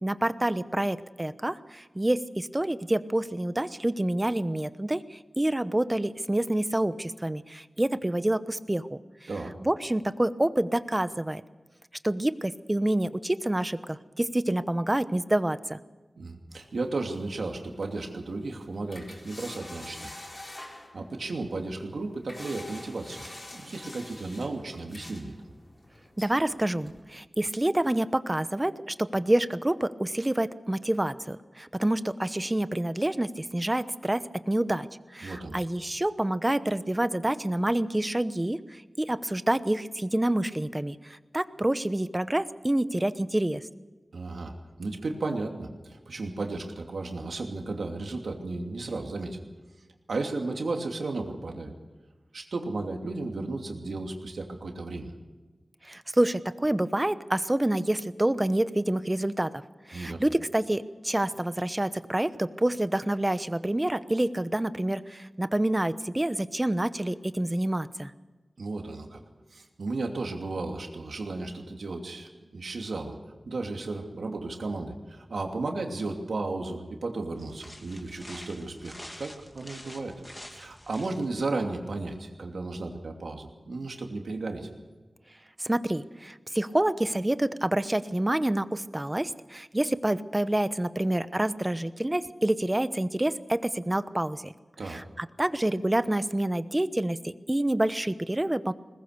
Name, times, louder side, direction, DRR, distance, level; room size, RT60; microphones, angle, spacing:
voice 1, 0.0-9.3 9.6-11.4 12.0-15.8 26.2-34.9 35.1-43.6 55.8-59.6 59.9-68.1 85.6-94.5 94.8-98.7, right 1 dB, 20° right, 13 dB, 1.0 m, -27 dB
voice 2, 16.2-20.1 20.4-23.2 23.5-25.3 35.2-35.6 44.1-44.5 44.8-49.4 50.1-51.7 52.3-55.1 59.9-60.2 68.6-69.2 69.5-73.2 73.4-80.2 80.5-84.7 94.8-95.0, right 3 dB, 85° right, 2 dB, 2.8 m, -34 dB
sound 1, 16.5-27.0, left 1 dB, 45° left, 4.6 m, -47 dB
sound 2, 77.3-81.4, left 1 dB, 20° left, 2.4 m, -47 dB
21.5 x 19.5 x 6.8 m, 1.2 s
wide cardioid pair, 65°, 0 cm